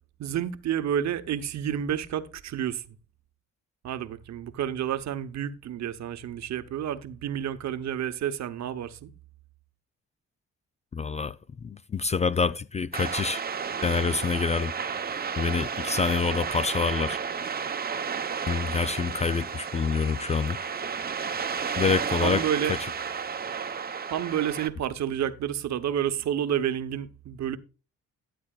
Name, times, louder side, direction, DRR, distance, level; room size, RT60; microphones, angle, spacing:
voice 1, 0.2-3.0 3.8-9.1 22.2-22.7 24.1-27.6, right 10 dB, 65° right, 0.9 m, -30 dB
voice 2, 10.9-11.3 11.6-13.4 13.8-14.7 15.4-17.2 18.5-20.6 21.8-22.4 22.8-22.9, left 5 dB, 25° left, 0.3 m, -26 dB
sound 1, 12.9-24.7, right 6 dB, 30° right, 0.8 m, -32 dB
12.5 x 9.4 x 2.3 m
cardioid pair, 90°, 30 cm